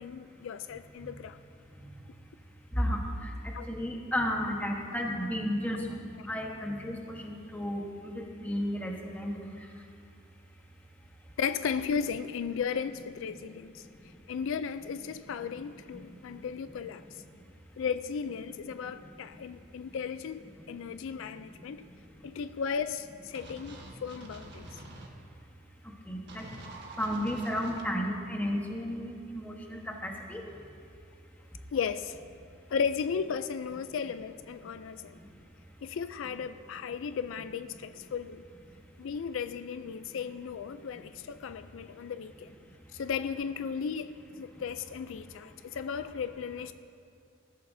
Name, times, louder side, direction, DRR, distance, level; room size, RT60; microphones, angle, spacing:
voice 1, 0.0-1.4 3.5-3.7 5.7-5.9 6.2-6.3 11.4-13.9 14.3-17.1 17.8-21.9 22.2-24.8 31.7-32.2 32.7-35.2 35.8-38.4 39.0-42.5 42.9-46.7, left 6 dB, 70° left, 12 dB, 0.4 m, -35 dB
voice 2, 2.8-5.8 6.3-9.3 26.1-26.5 27.0-30.4, equal, 10° left, 0 dB, 1.2 m, -33 dB
sound 1, 23.3-25.1 26.3-27.8, right 2 dB, 55° right, 1.5 m, -46 dB
20.0 x 13.5 x 2.7 m, 2.5 s
head